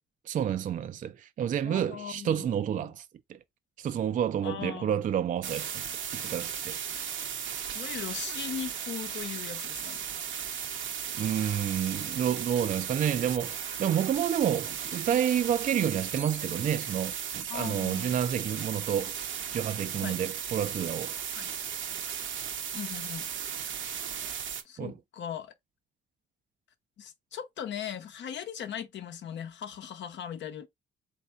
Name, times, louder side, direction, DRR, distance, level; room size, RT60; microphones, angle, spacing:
voice 1, 0.3-3.4 3.8-5.8 6.1-6.8 11.2-19.1 19.5-21.1 24.8-25.0, right 9 dB, 40° right, 0.4 m, -29 dB
voice 2, 1.6-2.5 2.8-2.9 4.4-5.0 7.7-10.0 17.5-18.1 20.0-20.2 21.4-21.5 22.7-23.3 24.6-25.5 27.0-30.7, left 9 dB, 65° left, 0.8 m, -39 dB
sound 1, 5.4-24.6, right 8 dB, 70° right, 0.8 m, -36 dB
3.4 x 2.7 x 4.3 m
cardioid pair, 90°, 20 cm